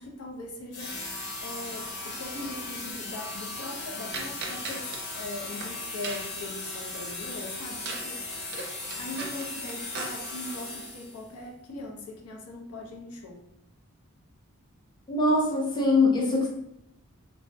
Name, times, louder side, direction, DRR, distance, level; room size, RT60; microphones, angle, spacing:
voice 1, 0.0-8.2 9.0-13.4, left 2 dB, 90° left, 1 dB, 0.5 m, -40 dB
sound 1, 0.7-11.3, left 2 dB, 55° left, 0.7 m, -37 dB
sound 2, 4.1-5.0 5.4-5.7 6.0-6.4 7.8-8.1 8.3-10.1, right 3 dB, 50° right, 0.5 m, -37 dB
voice 2, 15.1-16.5, left 2 dB, 20° left, -2 dB, 0.5 m, -23 dB
3.3 x 2.0 x 2.6 m, 0.79 s
head